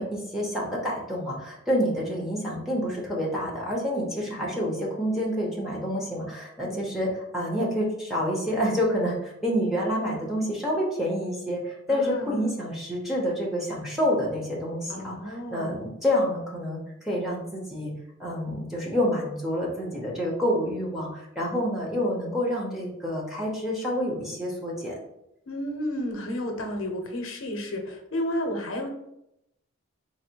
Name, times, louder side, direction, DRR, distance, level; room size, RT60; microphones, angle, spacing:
voice 1, 0.0-16.8 17.1-17.9 18.2-24.9, equal, ahead, -4 dB, 0.8 m, -28 dB
voice 2, 11.9-12.3 14.9-15.8 25.5-28.9, left 1 dB, 75° left, 4 dB, 0.7 m, -32 dB
3.9 x 2.1 x 4.4 m, 0.82 s
head